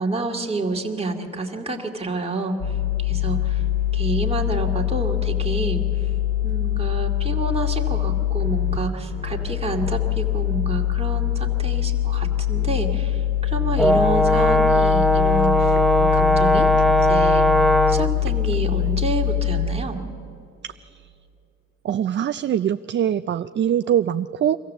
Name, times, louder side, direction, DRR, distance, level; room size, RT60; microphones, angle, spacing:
voice 1, 0.0-2.6 3.0-3.6 3.9-5.9 6.4-16.7 17.1-17.5 17.9-20.0, right 2 dB, 20° right, 1 dB, 2.3 m, -28 dB
sound 1, 2.6-8.8 9.1-19.7, left 12 dB, 40° left, 2.9 m, -23 dB
Brass instrument, 13.8-18.2, equal, ahead, 0.7 m, -18 dB
voice 2, 20.6-21.1 21.8-24.6, right 10 dB, 40° right, 12 dB, 0.4 m, -23 dB
24.5 x 15.0 x 7.4 m, 2.8 s
cardioid pair, 90°, 30 cm